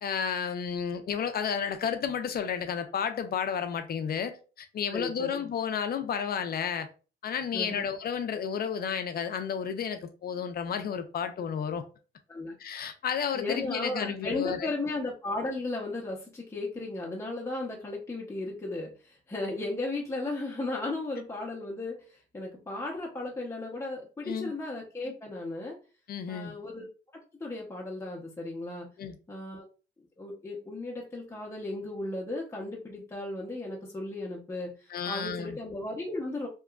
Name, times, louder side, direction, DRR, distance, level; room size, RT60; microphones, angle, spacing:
voice 1, 0.0-6.9 7.2-11.8 12.6-14.7 24.2-24.5 26.1-26.5 29.0-29.2 34.9-35.6, left 7 dB, 50° left, 0.5 m, -32 dB
voice 2, 4.9-5.4 7.5-7.8 12.3-12.5 13.3-25.8 26.3-26.9 27.4-28.9 29.3-29.7 30.2-36.5, left 2 dB, 15° left, 0.7 m, -35 dB
2.9 x 2.3 x 2.3 m
cardioid pair, 90°, 20 cm